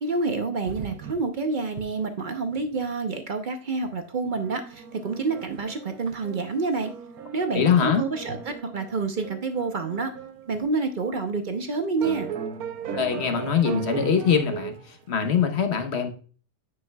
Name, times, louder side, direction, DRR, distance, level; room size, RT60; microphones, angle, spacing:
voice 1, 0.0-6.9 7.3-10.1 10.5-12.3, right 4 dB, 55° right, 7 dB, 0.5 m, -28 dB
sound 1, 0.6-1.4 1.7-1.8 2.2-2.3 2.5-2.9 3.9-4.0 4.3-10.7 11.3-11.4 12.0-14.9, right 7 dB, 70° right, 1.2 m, -37 dB
voice 2, 7.5-8.0 12.9-16.1, left 7 dB, 50° left, 6 dB, 1.0 m, -23 dB
9.6 x 5.3 x 2.2 m, 0.39 s
omnidirectional pair, 1.7 m